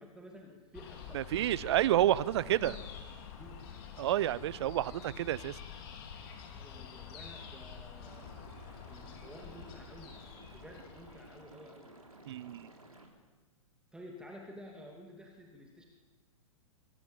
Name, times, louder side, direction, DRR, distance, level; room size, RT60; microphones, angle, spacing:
voice 1, 0.0-1.5 2.5-2.8 3.3-3.7 6.5-10.3 10.5-12.0 13.9-15.9, equal, 5° right, 0 dB, 2.7 m, -52 dB
sound 1, 0.7-11.4, left 8 dB, 40° left, 4.0 m, -48 dB
voice 2, 1.1-2.7 4.0-5.6 12.3-12.7, right 13 dB, 50° right, 20 dB, 0.8 m, -29 dB
Liquid, 8.1-13.1, right 2 dB, 85° right, 4.1 m, -55 dB
24.0 x 16.0 x 9.0 m, 1.3 s
figure-of-eight pair, 110°, 18 cm